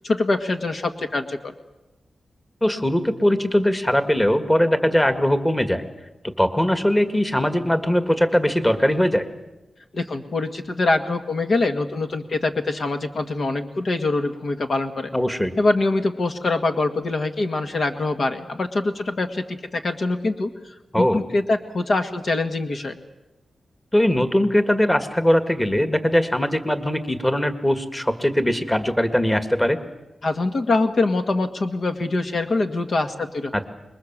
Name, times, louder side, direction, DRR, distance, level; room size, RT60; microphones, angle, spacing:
voice 1, 0.0-1.5 9.9-15.1 15.6-20.5 20.9-23.0 30.2-33.5, left 2 dB, 60° left, 6 dB, 1.7 m, -24 dB
voice 2, 2.6-5.8 6.4-9.3 15.1-15.5 20.9-21.2 23.9-29.8 33.5-33.6, equal, 15° left, 8 dB, 1.9 m, -20 dB
26.0 x 22.0 x 7.4 m, 1.0 s
wide cardioid pair, 85°, 0 cm